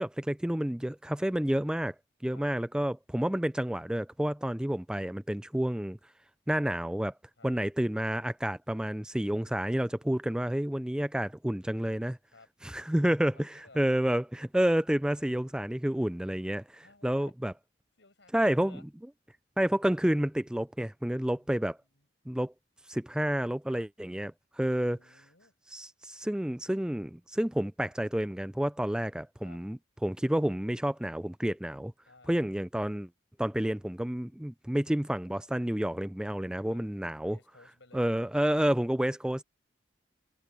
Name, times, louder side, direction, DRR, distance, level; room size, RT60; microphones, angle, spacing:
voice 1, 0.0-1.9 2.2-6.0 6.5-7.1 7.4-12.2 12.6-17.5 18.3-18.8 19.6-21.8 22.3-22.5 22.9-24.3 24.6-25.0 25.7-31.9 32.3-33.1 33.4-37.4 37.9-39.4, right 1 dB, 5° right, 0.4 m, -29 dB
voice 2, 13.3-14.0 16.8-17.3 18.0-18.9 21.2-22.1 23.6-23.9 24.7-25.5 29.4-29.6 32.1-32.4 36.7-37.0 37.2-38.0, left 3 dB, 80° left, 6.1 m, -57 dB
head